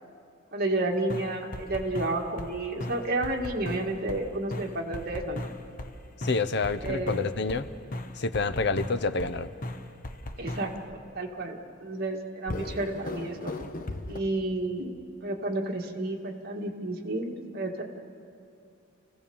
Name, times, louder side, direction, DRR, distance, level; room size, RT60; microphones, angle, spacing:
voice 1, 0.5-5.5 6.8-7.3 10.4-13.5 14.1-17.8, right 2 dB, 50° right, 1 dB, 2.0 m, -31 dB
sound 1, 1.1-2.5 2.8-4.2 4.5-7.6 7.9-9.3 9.6-10.9 12.5-14.2, left 1 dB, 45° left, 1.1 m, -37 dB
voice 2, 6.2-7.7 8.2-9.5, left 3 dB, 60° left, 12 dB, 0.8 m, -28 dB
28.5 x 16.5 x 7.1 m, 2.6 s
head